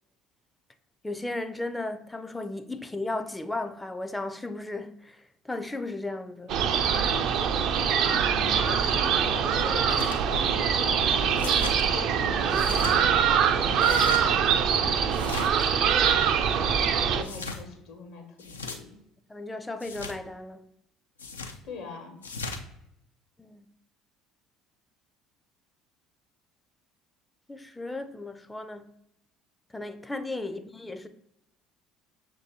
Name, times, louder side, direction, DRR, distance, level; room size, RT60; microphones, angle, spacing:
voice 1, 1.0-5.2 5.5-6.5 19.3-20.6 23.4-23.7 27.5-28.9 29.7-31.1, left 2 dB, 10° left, 0.4 m, -35 dB
sound 1, 6.5-17.2, right 7 dB, 55° right, 0.3 m, -24 dB
voice 2, 8.0-13.2 13.5-15.1 17.0-18.9 21.6-22.2 30.4-30.6, left 3 dB, 60° left, 1.0 m, -42 dB
sound 2, 9.9-10.2 11.4-11.8 12.5-13.0 13.8-14.2 15.1-15.7 17.2-17.6 18.4-18.8 19.8-20.2 21.2-21.6 22.2-22.6, left 4 dB, 85° left, 0.4 m, -37 dB
6.0 x 2.7 x 2.7 m
figure-of-eight pair, 60°, 0 cm